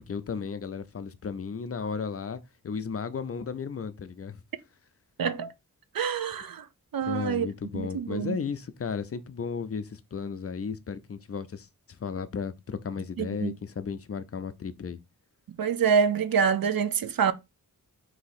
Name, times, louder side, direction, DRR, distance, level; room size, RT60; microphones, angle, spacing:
voice 1, 0.0-4.4 7.1-11.7 12.0-15.0, left 6 dB, 40° left, 0.4 m, -34 dB
voice 2, 5.2-5.5 5.9-6.7 6.9-7.5 7.7-8.4 13.2-13.5 15.6-17.3, right 6 dB, 75° right, 0.6 m, -26 dB
4.0 x 2.7 x 4.0 m
wide cardioid pair, 105°, 35 cm